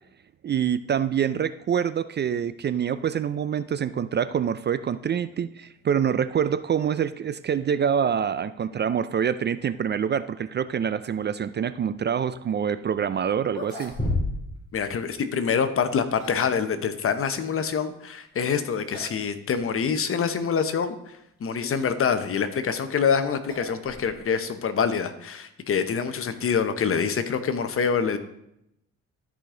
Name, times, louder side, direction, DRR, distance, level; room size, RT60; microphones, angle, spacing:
voice 1, 0.4-13.9, right 8 dB, 35° right, 14 dB, 0.4 m, -26 dB
sound 1, 13.0-13.1 13.5-14.6 14.8-14.9 15.8-16.5 18.3-18.6 18.9-19.2 19.5-19.6 20.4-20.5 22.3-24.4, left 2 dB, 15° left, 3.5 m, -33 dB
voice 2, 14.7-28.2, left 6 dB, 45° left, 10 dB, 0.9 m, -26 dB
13.0 x 5.1 x 3.8 m, 0.80 s
cardioid pair, 90°, 30 cm